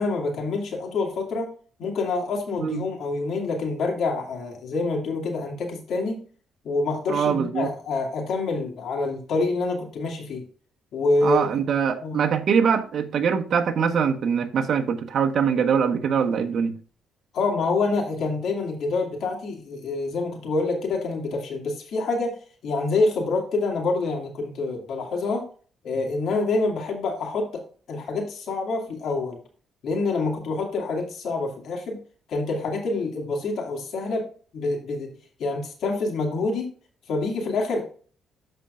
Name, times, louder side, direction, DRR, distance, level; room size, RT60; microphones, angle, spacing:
voice 1, 0.0-1.5 1.8-6.2 6.6-10.4 10.9-11.5 12.0-12.2 17.3-22.4 22.6-25.4 25.8-27.6 27.9-29.4 29.8-32.0 32.3-34.2 34.5-35.1 35.4-36.7 37.1-37.8, left 3 dB, 70° left, 2.4 m, -26 dB
voice 2, 7.1-7.7 11.2-16.8, right 7 dB, 60° right, 1.3 m, -23 dB
13.0 x 4.5 x 2.5 m
cardioid pair, 90°, 0 cm